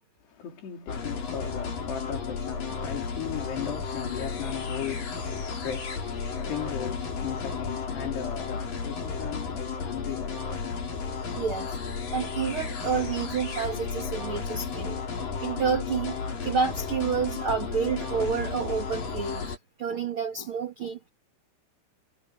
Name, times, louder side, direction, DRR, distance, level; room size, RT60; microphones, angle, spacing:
voice 1, 0.2-11.0, left 9 dB, 75° left, 5.6 m, -37 dB
sound 1, 0.9-19.6, left 5 dB, 55° left, 6.3 m, -33 dB
voice 2, 11.4-11.8 12.1-15.0 15.4-16.2 16.4-19.5 19.8-21.1, right 6 dB, 40° right, 2.0 m, -29 dB
omnidirectional pair, 4.8 m